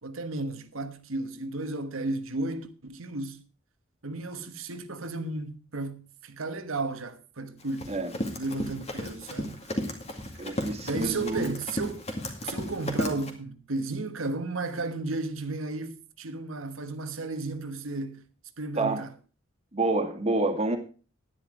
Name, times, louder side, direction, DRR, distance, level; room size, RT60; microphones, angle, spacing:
voice 1, 0.0-3.4 4.0-8.0 8.3-9.6 10.8-12.0 12.4-18.3 18.6-19.1, right 3 dB, 90° right, 1.2 m, -34 dB
Run, 7.6-13.3, left 1 dB, 35° left, 2.2 m, -34 dB
voice 2, 10.4-11.5 18.8-19.0 19.7-20.8, right 2 dB, 30° right, 2.0 m, -28 dB
10.5 x 10.0 x 4.9 m
head